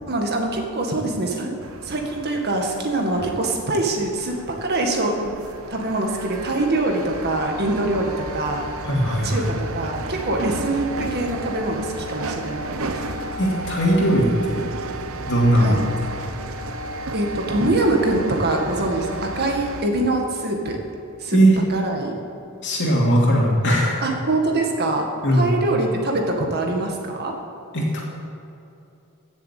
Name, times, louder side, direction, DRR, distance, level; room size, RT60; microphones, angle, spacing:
voice 1, 0.1-1.5 1.8-5.3 5.7-8.6 9.2-13.0 15.6-15.8 17.1-20.8 21.2-21.4 21.7-22.2 24.0-25.0 25.3-27.4, right 2 dB, 45° right, 2 dB, 2.0 m, -24 dB
sound 1, 1.6-19.9, right 2 dB, 65° right, 1.0 m, -33 dB
voice 2, 8.8-9.5 13.4-14.6 15.3-15.8 21.3-21.6 22.6-24.0 25.2-25.5 27.7-28.0, right 1 dB, 55° left, -3 dB, 2.9 m, -19 dB
16.0 x 7.2 x 8.5 m, 2.8 s
head